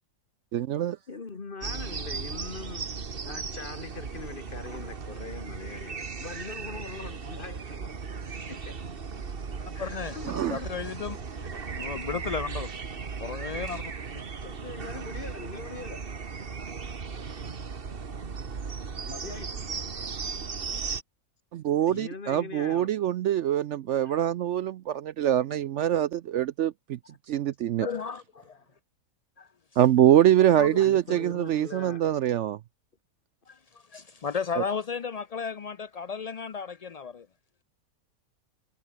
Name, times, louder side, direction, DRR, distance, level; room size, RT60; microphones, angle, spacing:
voice 1, 0.5-1.0 10.3-10.6 21.5-27.0 27.3-27.9 29.8-32.6 34.6-34.7, right 11 dB, 65° right, 0.8 m, -24 dB
voice 2, 1.1-8.0 8.5-8.8 9.7-11.3 14.4-16.1 19.1-19.6 21.9-22.9 24.0-24.2 30.8-32.0, left 4 dB, 35° left, 1.7 m, -42 dB
sound 1, 1.6-21.0, right 5 dB, 40° right, 1.5 m, -37 dB
voice 3, 9.8-10.2 10.5-11.5 11.8-12.7 13.2-13.8 27.8-28.6 29.4-29.5 30.6-30.8 33.5-33.6 33.9-37.3, left 6 dB, 70° left, 0.3 m, -34 dB
omnidirectional pair, 1.5 m